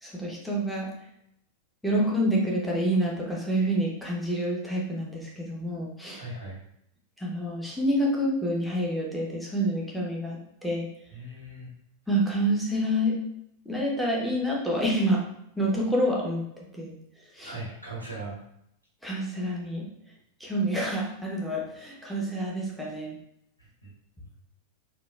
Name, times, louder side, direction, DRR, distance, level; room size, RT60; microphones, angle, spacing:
voice 1, 0.0-0.9 1.8-6.2 7.2-10.9 12.1-13.2 13.7-15.2 15.6-16.9 17.3-17.5 19.0-19.9 20.4-23.1, equal, ahead, -4 dB, 0.7 m, -28 dB
voice 2, 6.1-6.6 11.1-11.7 17.4-18.4 23.6-23.9, right 2 dB, 90° left, -5 dB, 1.0 m, -39 dB
3.9 x 2.2 x 2.3 m, 0.75 s
figure-of-eight pair, 90°, 0 cm